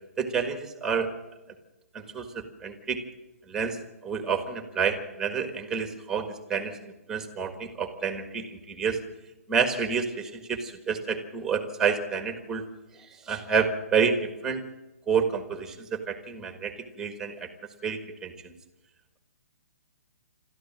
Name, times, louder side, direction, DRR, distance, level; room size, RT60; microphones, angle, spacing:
voice 1, 0.2-1.1 1.9-3.0 3.5-6.8 7.1-9.0 9.5-12.6 13.3-14.6 15.1-17.5 17.8-18.5, right 6 dB, 5° right, 8 dB, 1.6 m, -29 dB
27.5 x 13.5 x 7.5 m, 1.1 s
hypercardioid pair, 165°, 8 cm